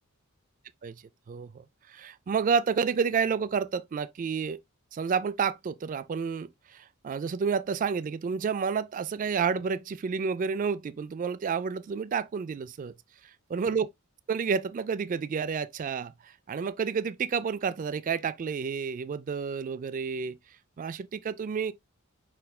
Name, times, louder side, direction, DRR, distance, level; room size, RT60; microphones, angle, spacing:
voice 1, 1.3-4.6 4.9-12.9 13.5-13.9 14.3-16.1 16.5-20.4 20.8-21.7, right 6 dB, 35° right, 0.3 m, -30 dB
5.4 x 4.4 x 2.2 m
head